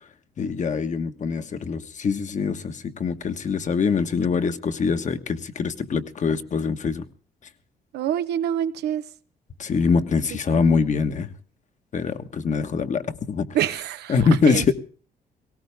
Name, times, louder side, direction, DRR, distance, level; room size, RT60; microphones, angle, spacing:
voice 1, 0.4-7.0 9.6-11.3 11.9-13.5 14.1-14.7, left 5 dB, 45° left, 8 dB, 1.4 m, -23 dB
voice 2, 7.9-9.0 10.3-10.8 13.5-14.7, right 10 dB, 90° right, 12 dB, 0.9 m, -27 dB
18.5 x 18.0 x 3.5 m, 0.40 s
cardioid pair, 95°, 17 cm